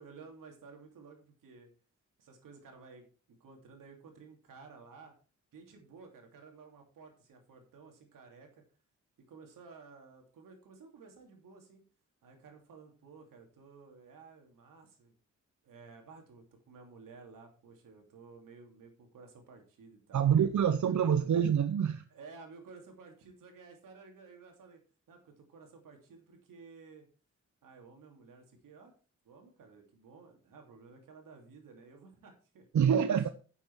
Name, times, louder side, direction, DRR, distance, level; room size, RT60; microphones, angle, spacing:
voice 1, 0.0-1.7 2.2-5.1 5.5-8.6 9.3-11.8 12.2-15.2 15.6-20.3 20.9-21.3 22.1-24.8 25.1-27.1 27.6-28.9 29.2-32.7, right 4 dB, 85° right, 2.8 m, -54 dB
voice 2, 20.1-22.0 32.7-33.3, right 8 dB, 65° right, 0.8 m, -26 dB
10.0 x 7.2 x 4.7 m
cardioid pair, 55°, 32 cm